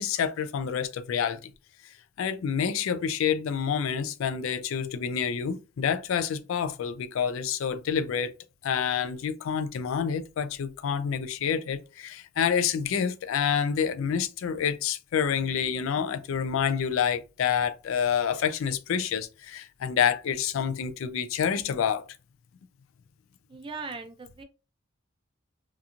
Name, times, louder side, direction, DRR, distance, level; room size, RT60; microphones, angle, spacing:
voice 1, 0.0-1.5 2.2-8.3 8.6-22.0, left 7 dB, 80° left, 0.3 m, -28 dB
voice 2, 23.5-24.4, right 4 dB, 25° right, 0.3 m, -39 dB
2.8 x 2.4 x 2.4 m
head